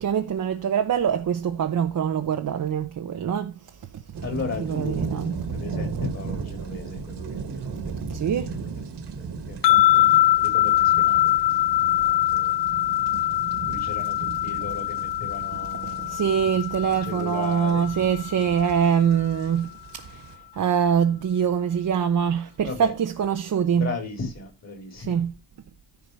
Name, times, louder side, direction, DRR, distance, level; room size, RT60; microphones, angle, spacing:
voice 1, 0.0-3.5 4.7-5.3 8.1-8.5 16.1-20.0 20.6-23.9 25.1-25.3, right 8 dB, 45° right, 0.9 m, -24 dB
sound 1, 4.1-20.4, right 5 dB, 70° right, 2.0 m, -36 dB
voice 2, 4.2-8.8 9.2-10.1 10.3-11.4 11.8-12.5 13.7-16.2 17.0-18.5 22.6-22.9 23.7-25.2, left 4 dB, 35° left, 3.9 m, -36 dB
sound 2, 9.6-18.9, left 15 dB, 80° left, 0.6 m, -23 dB
14.5 x 4.8 x 4.7 m
wide cardioid pair, 155°, 43 cm